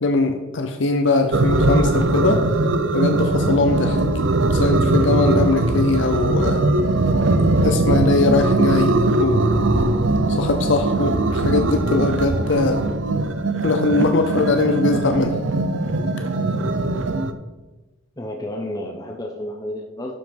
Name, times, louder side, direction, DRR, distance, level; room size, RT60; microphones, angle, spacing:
voice 1, 0.0-2.4 2.9-4.0 4.5-6.6 7.6-9.5 10.3-12.8 13.6-15.4, left 3 dB, 65° left, 6 dB, 0.7 m, -21 dB
sound 1, 1.3-17.3, right 2 dB, 70° right, 0.7 m, -20 dB
voice 2, 18.2-20.1, left 1 dB, 20° left, 1 dB, 0.9 m, -31 dB
12.0 x 5.0 x 5.3 m, 1.1 s
head